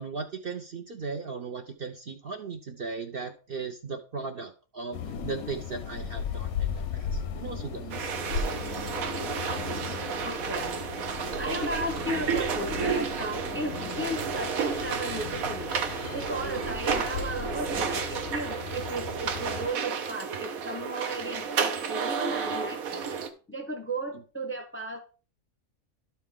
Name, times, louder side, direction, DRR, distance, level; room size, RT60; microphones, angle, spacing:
voice 1, 0.0-10.2 16.7-16.8, right 4 dB, 50° right, 4 dB, 0.8 m, -38 dB
sound 1, 4.9-19.7, left 6 dB, 90° left, 1.2 m, -37 dB
sound 2, 7.9-23.3, right 6 dB, 80° right, 1.3 m, -32 dB
voice 2, 10.2-15.7 16.1-23.1 23.5-25.0, right 1 dB, 10° left, 4 dB, 0.7 m, -35 dB
12.0 x 4.3 x 3.6 m, 0.36 s
omnidirectional pair, 1.5 m